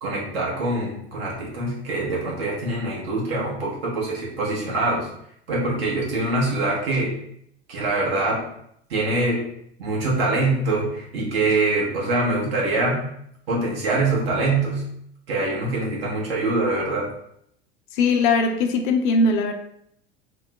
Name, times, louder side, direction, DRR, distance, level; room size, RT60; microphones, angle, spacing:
voice 1, 0.0-5.1 5.5-7.1 7.7-8.5 8.9-9.5 9.8-13.0 13.5-14.8 15.3-17.1, right 2 dB, 65° right, -4 dB, 1.2 m, -24 dB
voice 2, 17.9-19.5, left 3 dB, 50° left, 5 dB, 0.5 m, -20 dB
3.0 x 2.0 x 3.4 m, 0.72 s
figure-of-eight pair, 75°, 32 cm